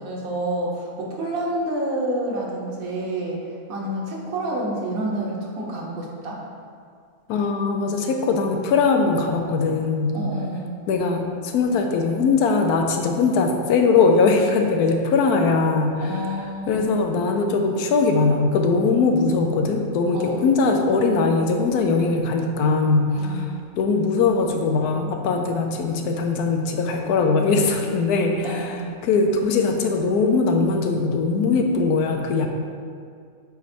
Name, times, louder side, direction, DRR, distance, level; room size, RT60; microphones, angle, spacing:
voice 1, 0.0-3.4 3.7-6.4 10.1-10.8 16.0-16.8 20.1-20.4 23.2-23.6 28.4-29.0, right 1 dB, 65° right, -2 dB, 1.4 m, -28 dB
voice 2, 7.3-10.2 10.9-16.0 16.7-23.5 23.8-28.7 29.0-32.5, left 4 dB, 75° left, 3 dB, 1.1 m, -21 dB
7.9 x 3.1 x 4.3 m, 2.2 s
omnidirectional pair, 1.6 m